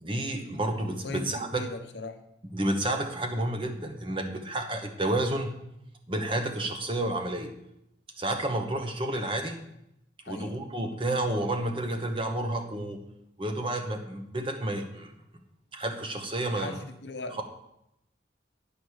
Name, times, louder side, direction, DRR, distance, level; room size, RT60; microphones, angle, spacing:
voice 1, 0.0-1.6 2.5-5.6 6.1-7.5 8.2-9.6 10.3-13.0 13.4-15.1 15.7-16.8, right 1 dB, 30° right, 4 dB, 1.0 m, -30 dB
voice 2, 1.0-2.2 10.2-10.5 16.5-17.4, left 2 dB, 65° left, 7 dB, 0.9 m, -38 dB
9.6 x 5.2 x 6.4 m, 0.81 s
head